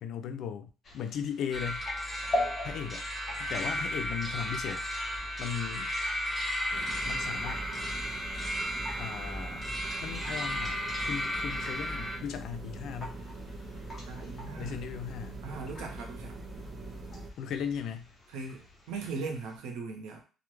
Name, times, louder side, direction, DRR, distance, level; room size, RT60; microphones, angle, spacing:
voice 1, 0.0-1.9 2.6-3.1 3.4-4.8 5.4-5.9 7.0-7.6 9.0-9.6 10.0-13.2 14.6-15.4 17.4-18.1, left 8 dB, 70° left, 8 dB, 0.4 m, -37 dB
sound 1, 0.8-19.6, left 1 dB, 35° left, 0.8 m, -44 dB
sound 2, 1.5-12.2, equal, 5° left, 0.6 m, -34 dB
sound 3, 6.7-17.3, right 2 dB, 35° right, 0.4 m, -43 dB
voice 2, 14.1-14.8 15.4-16.4 18.3-18.6 18.9-20.2, right 4 dB, 90° right, 2 dB, 0.7 m, -39 dB
2.3 x 2.1 x 3.1 m, 0.34 s
cardioid pair, 110°, 0 cm